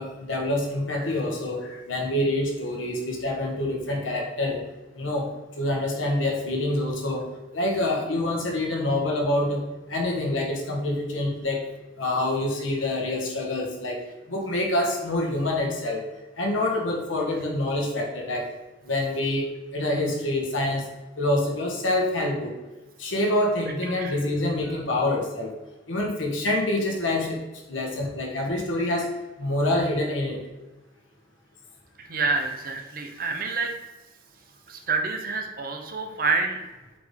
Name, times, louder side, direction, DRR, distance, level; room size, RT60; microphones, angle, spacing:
voice 1, 0.0-4.6 4.9-5.3 5.6-7.3 7.5-11.7 12.0-14.0 14.3-16.0 16.4-18.5 18.8-20.9 21.2-22.5 23.0-25.5 25.9-27.4 27.7-29.1 29.4-30.4, left 1 dB, 90° left, 1 dB, 1.4 m, -26 dB
voice 2, 32.0-33.7 34.7-36.6, right 4 dB, 50° right, 4 dB, 0.8 m, -27 dB
7.7 x 3.9 x 3.7 m, 1.1 s
head